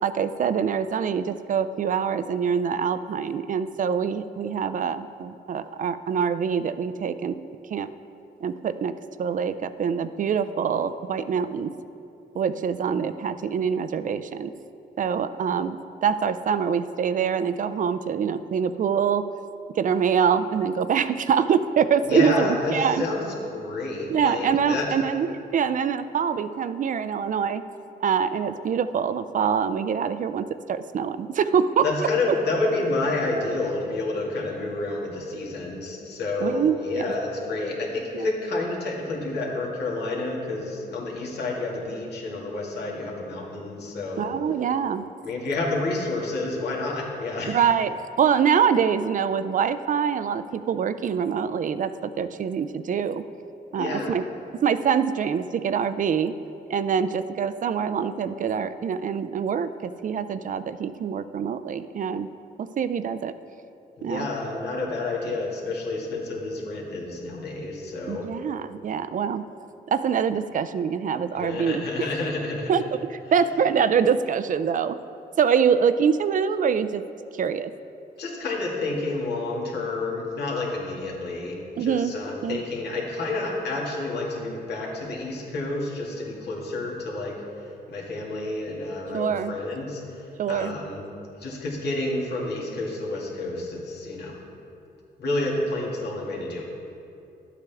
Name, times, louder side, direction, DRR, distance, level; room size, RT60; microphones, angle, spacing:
voice 1, 0.0-7.4 7.7-7.9 8.4-8.9 9.2-11.7 12.3-14.5 15.0-15.8 16.0-19.2 19.7-23.0 24.1-27.6 28.0-31.9 36.4-37.0 38.1-38.3 44.2-45.1 47.5-47.9 48.2-53.2 53.7-54.2 54.6-56.3 56.7-62.3 62.6-63.3 64.0-64.3 68.1-69.4 69.9-72.1 72.7-72.8 73.1-75.0 75.4-77.0 77.3-77.7 81.8-82.1 82.4-82.6 89.1-89.5 90.4-90.7, right 7 dB, 50° right, 12 dB, 0.4 m, -24 dB
voice 2, 22.1-24.9 31.8-44.3 45.2-47.7 53.7-54.1 64.0-68.3 71.3-72.8 78.2-87.4 87.9-91.0 91.4-94.4 95.2-96.6, left 2 dB, 80° left, -3 dB, 2.2 m, -29 dB
11.5 x 8.2 x 3.5 m, 2.7 s
cardioid pair, 95°, 17 cm